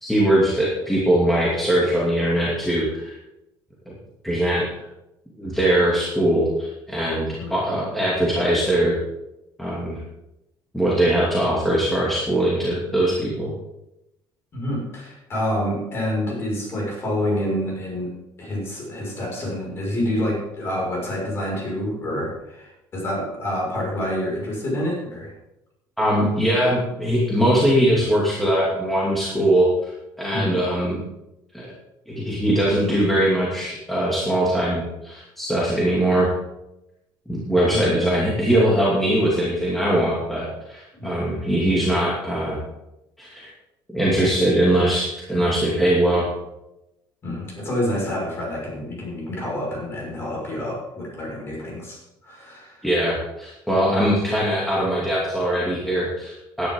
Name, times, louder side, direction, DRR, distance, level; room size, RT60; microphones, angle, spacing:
voice 1, 0.0-3.2 4.2-4.7 5.4-9.0 9.6-10.0 10.7-13.5 26.0-29.9 30.2-31.0 31.5-31.7 32.1-36.3 37.3-42.6 43.2-43.5 43.9-46.3 52.8-56.7, right 1 dB, ahead, -7 dB, 2.7 m, -21 dB
voice 2, 14.5-18.1 18.4-25.3 30.3-30.6 37.7-38.0 41.0-41.3 47.2-52.9 54.0-54.1, left 1 dB, 30° left, -2 dB, 5.9 m, -27 dB
15.5 x 10.0 x 3.9 m, 0.90 s
cardioid pair, 155°, 8 cm